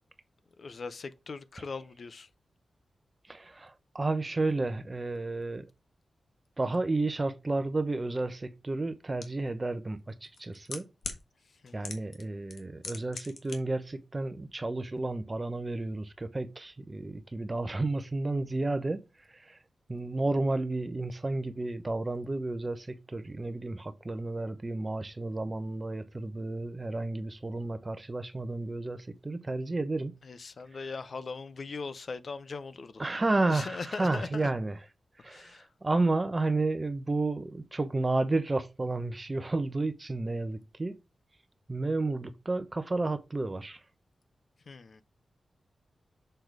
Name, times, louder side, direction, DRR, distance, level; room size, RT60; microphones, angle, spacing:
voice 1, 0.6-2.3 11.6-12.0 30.2-33.1 33.5-34.5 35.2-35.7 44.7-45.0, left 4 dB, 55° left, 0.7 m, -40 dB
voice 2, 3.3-5.6 6.6-10.8 11.7-19.0 19.5-19.6 19.9-30.1 33.0-34.8 35.2-41.0 41.7-43.8, right 2 dB, 25° right, 0.9 m, -31 dB
sound 1, 9.2-9.3 10.2-11.2 11.8-12.2 12.5-13.6 13.8-13.9, left 5 dB, 80° left, 1.3 m, -38 dB
6.7 x 3.9 x 4.6 m
wide cardioid pair, 120°, 0 cm